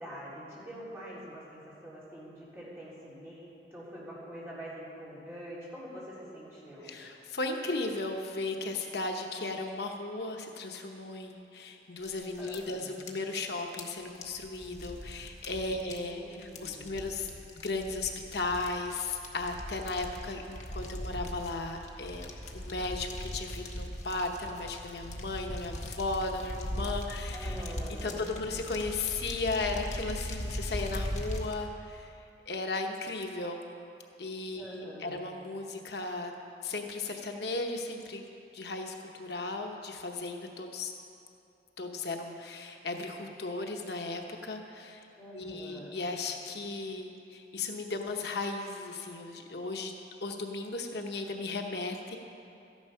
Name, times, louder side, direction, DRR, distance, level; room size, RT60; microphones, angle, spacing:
voice 1, 0.0-6.9 12.4-13.1 15.8-17.0 27.3-28.2 34.6-35.3 45.2-46.0, equal, 15° right, -9 dB, 3.5 m, -45 dB
voice 2, 6.8-17.3 17.6-27.6 28.0-32.1 32.5-33.7 34.2-36.3 36.6-38.2 38.5-40.9 41.8-45.1 45.3-49.9 50.2-52.2, left 3 dB, 70° left, 3 dB, 0.9 m, -36 dB
sound 1, 12.0-31.5, equal, 40° left, 1.1 m, -40 dB
13.5 x 10.5 x 5.6 m, 2.7 s
head